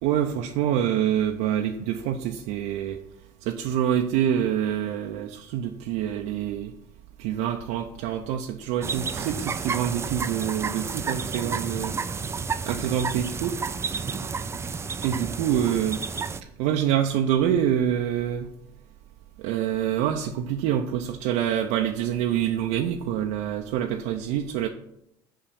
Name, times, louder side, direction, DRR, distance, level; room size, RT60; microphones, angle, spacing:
voice 1, 0.0-3.0 3.5-6.7 7.2-12.0 12.7-13.6 15.0-16.0 16.6-18.5 19.4-24.7, right 10 dB, 75° right, 3 dB, 0.6 m, -26 dB
sound 1, 8.8-16.4, right 5 dB, 20° right, 0.4 m, -31 dB
5.7 x 5.2 x 6.8 m, 0.80 s
supercardioid pair, 90°, 12 cm